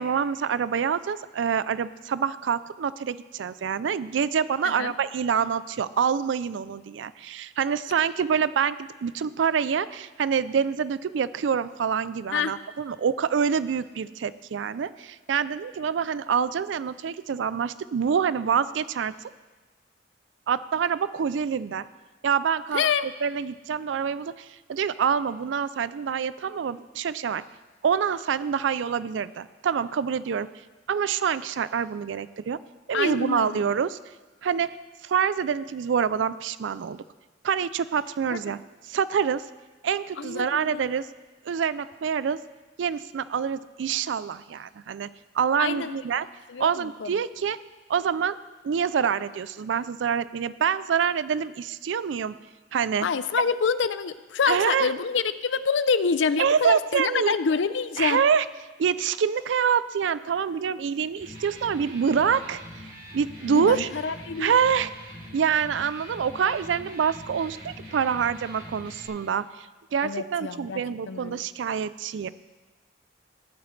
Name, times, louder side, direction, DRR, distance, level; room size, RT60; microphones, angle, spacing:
voice 1, 0.0-19.1 20.5-21.9 22.2-22.8 23.2-27.4 27.8-30.5 30.9-32.6 32.9-34.0 34.4-34.8 35.0-37.0 37.4-38.6 38.9-39.5 39.8-41.1 41.5-42.4 42.8-45.1 45.3-46.3 46.6-47.6 47.9-48.4 48.6-52.4 52.7-53.1 54.5-54.9 56.4-57.4 58.0-58.5 58.8-62.9 63.1-63.9 64.4-64.9 65.3-69.7 69.9-72.3, right 7 dB, 85° right, 16 dB, 0.4 m, -26 dB
voice 2, 22.7-23.1 32.9-33.7 38.3-38.4 40.2-40.9 45.6-46.0 46.5-47.2 53.0-58.2 63.5-64.6 70.0-70.8 71.1-71.5, left 5 dB, 85° left, 14 dB, 0.5 m, -27 dB
Electric guitar, 61.1-69.1, equal, 55° right, 4.5 m, -43 dB
16.0 x 11.0 x 3.2 m, 1.2 s
head